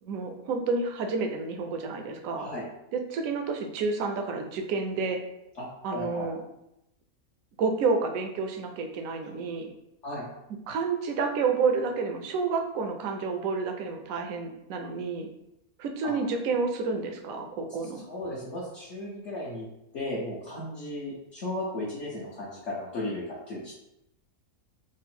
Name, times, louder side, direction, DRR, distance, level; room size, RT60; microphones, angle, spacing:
voice 1, 0.0-2.5 2.9-5.2 5.8-6.4 7.6-9.7 10.7-15.3 15.8-18.0, right 4 dB, 70° right, 4 dB, 0.9 m, -29 dB
voice 2, 5.9-6.3 10.0-10.3 16.0-16.1 18.1-19.7 19.9-23.7, left 1 dB, 55° left, -8 dB, 1.1 m, -35 dB
3.7 x 2.0 x 4.2 m, 0.86 s
omnidirectional pair, 1.6 m